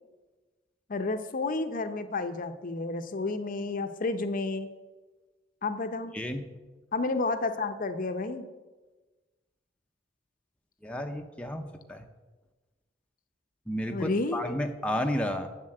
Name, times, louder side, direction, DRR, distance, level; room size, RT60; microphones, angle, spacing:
voice 1, 0.9-4.7 5.6-6.2 6.9-8.5 13.9-14.6, left 3 dB, 45° left, 9 dB, 0.6 m, -31 dB
voice 2, 10.8-12.1 13.7-15.5, equal, 5° left, 4 dB, 0.6 m, -32 dB
7.3 x 7.3 x 7.7 m, 1.2 s
head